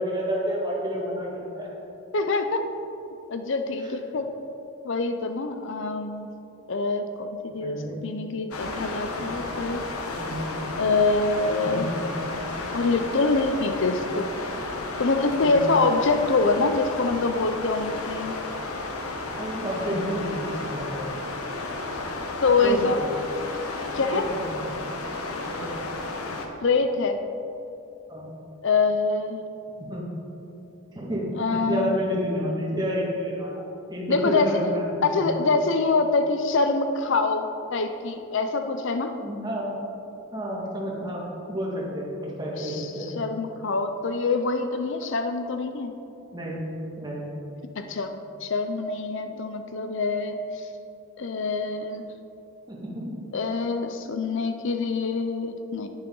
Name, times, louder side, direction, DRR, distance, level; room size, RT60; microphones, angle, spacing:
voice 1, 0.0-1.7 3.8-3.9 7.6-8.0 10.2-10.5 11.6-11.9 15.4-15.7 19.4-21.1 22.6-22.9 24.0-24.9 25.4-25.7 28.1-28.3 29.8-30.1 30.9-33.6 33.9-35.3 39.2-39.7 40.3-43.1 46.3-46.6 47.0-47.3 52.7-53.2, equal, 20° right, -4 dB, 1.9 m, -30 dB
voice 2, 2.1-2.6 3.3-4.3 4.8-6.3 6.7-9.8 10.8-11.9 12.7-14.3 15.0-18.4 22.4-23.0 23.9-24.2 26.6-27.2 28.6-29.5 31.4-32.0 34.1-34.6 35.0-39.1 42.6-45.9 47.8-48.1 48.4-50.7 51.2-52.1 53.3-55.9, left 3 dB, 55° left, 7 dB, 0.5 m, -25 dB
sound 1, 8.5-26.5, left 2 dB, 85° left, 1.1 m, -33 dB
10.5 x 9.6 x 3.9 m, 2.9 s
head